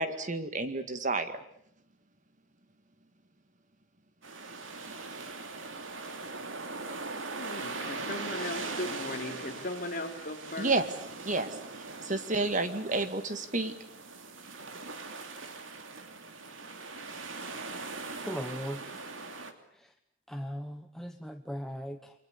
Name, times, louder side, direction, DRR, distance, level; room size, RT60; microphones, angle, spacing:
voice 1, 0.0-1.4 10.6-10.8 11.2-11.5 12.0-13.8, right 2 dB, 40° right, 10 dB, 2.0 m, -30 dB
sound 1, 4.2-19.5, right 3 dB, 75° right, 3.0 m, -41 dB
voice 2, 7.4-10.7 12.9-13.0, left 2 dB, 45° left, 4 dB, 3.7 m, -38 dB
voice 3, 18.2-19.0 19.8-19.9 20.3-22.1, equal, ahead, 5 dB, 1.2 m, -38 dB
29.5 x 23.5 x 8.3 m, 0.70 s
head